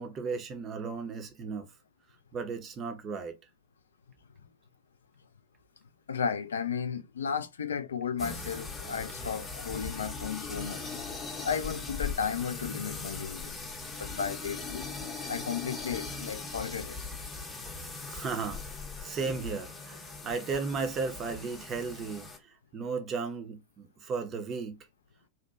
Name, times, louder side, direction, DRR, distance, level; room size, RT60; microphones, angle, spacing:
voice 1, 0.0-1.7 2.3-3.4 18.1-18.6 19.0-22.3 22.7-24.8, right 4 dB, 30° right, 0.5 m, -35 dB
voice 2, 6.1-10.8 11.4-13.6 13.9-14.9 15.3-17.0, left 6 dB, 70° left, 0.3 m, -34 dB
sound 1, 8.2-22.4, left 4 dB, 15° left, 0.6 m, -40 dB
2.8 x 2.1 x 2.3 m
figure-of-eight pair, 90°, 0 cm